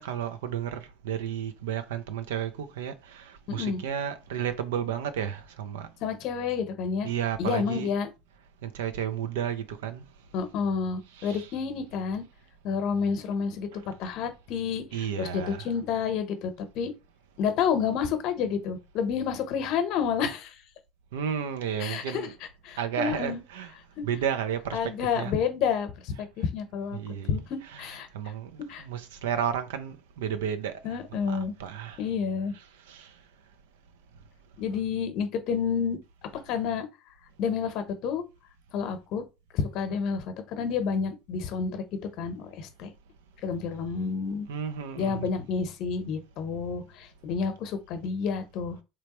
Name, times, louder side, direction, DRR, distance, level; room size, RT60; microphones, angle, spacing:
voice 1, 0.0-5.9 7.0-7.9 8.6-10.1 11.1-11.5 13.7-13.8 14.9-15.7 21.1-22.3 22.8-23.7 24.0-25.3 26.9-27.4 27.7-27.8 28.1-31.0 31.3-32.0 32.9-33.1 44.5-45.3, right 9 dB, 80° right, 0.5 m, -32 dB
voice 2, 3.5-3.8 6.0-7.1 7.4-8.1 10.3-12.2 12.6-16.9 17.4-20.5 21.8-22.3 22.6-23.4 24.0-24.1 24.7-27.0 27.3-28.1 28.7-28.8 30.8-31.5 32.0-32.5 34.6-36.0 36.5-36.9 37.4-38.2 38.7-39.2 39.5-41.8 42.2-42.9 43.4-44.5 45.0-48.8, left 6 dB, 60° left, 0.8 m, -29 dB
3.4 x 2.9 x 3.0 m
hypercardioid pair, 70°, 0 cm